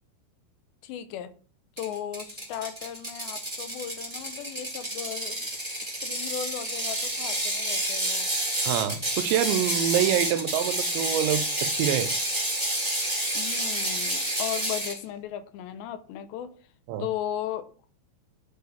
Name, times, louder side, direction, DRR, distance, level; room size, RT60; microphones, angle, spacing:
voice 1, 0.8-1.3 1.8-5.4 6.0-8.3 13.3-16.5 17.0-17.7, left 10 dB, 75° left, 3.0 m, -36 dB
Ratchet pawl, 1.8-15.0, right 1 dB, 10° right, 2.4 m, -29 dB
voice 2, 8.6-12.1 16.9-17.1, right 11 dB, 80° right, 3.0 m, -26 dB
9.8 x 7.6 x 7.3 m
omnidirectional pair, 5.3 m